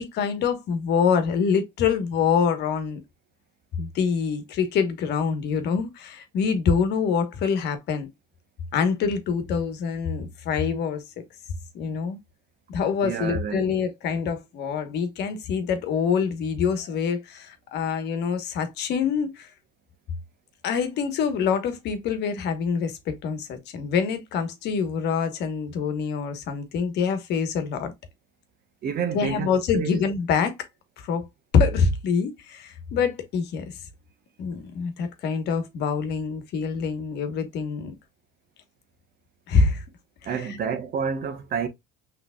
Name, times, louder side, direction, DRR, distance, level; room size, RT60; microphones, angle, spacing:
voice 1, 0.0-3.0 3.8-8.1 8.7-11.0 11.7-12.2 12.7-19.5 20.6-27.9 29.1-30.6 31.0-31.3 31.5-33.7 34.4-37.9 39.5-39.8 40.2-40.3, left 6 dB, 60° left, 1.2 m, -25 dB
voice 2, 13.0-13.7 28.8-30.0 40.2-41.7, right 6 dB, 50° right, 1.1 m, -29 dB
5.9 x 3.3 x 2.3 m
supercardioid pair, 95°, 19 cm